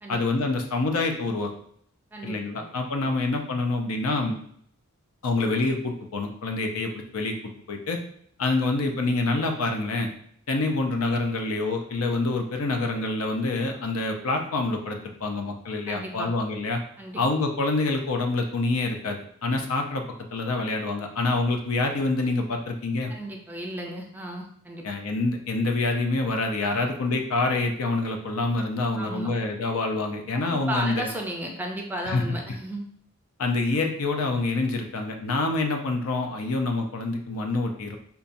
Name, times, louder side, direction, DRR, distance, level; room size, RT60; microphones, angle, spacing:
voice 1, 0.1-1.5 2.2-4.4 5.2-7.3 7.7-8.0 8.4-10.1 10.5-16.8 17.2-20.0 20.3-23.1 24.8-31.1 32.1-32.2 33.4-38.0, left 3 dB, 70° left, 3 dB, 0.6 m, -26 dB
voice 2, 2.1-2.7 15.9-16.3 17.0-17.2 23.1-24.8 28.9-29.3 30.3-32.9, right 1 dB, 10° right, 1 dB, 0.4 m, -34 dB
5.3 x 2.3 x 2.6 m, 0.66 s
head